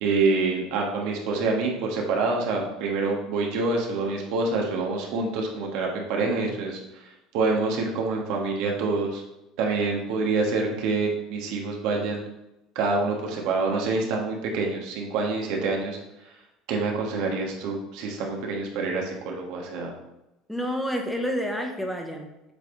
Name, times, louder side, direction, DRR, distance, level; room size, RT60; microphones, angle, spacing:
voice 1, 0.0-9.2 9.6-12.2 12.7-16.0 16.7-19.9, right 3 dB, 70° right, 0 dB, 1.4 m, -26 dB
voice 2, 20.5-22.5, equal, 5° left, 3 dB, 0.8 m, -29 dB
7.5 x 3.4 x 3.8 m, 0.93 s
supercardioid pair, 120°, 0 cm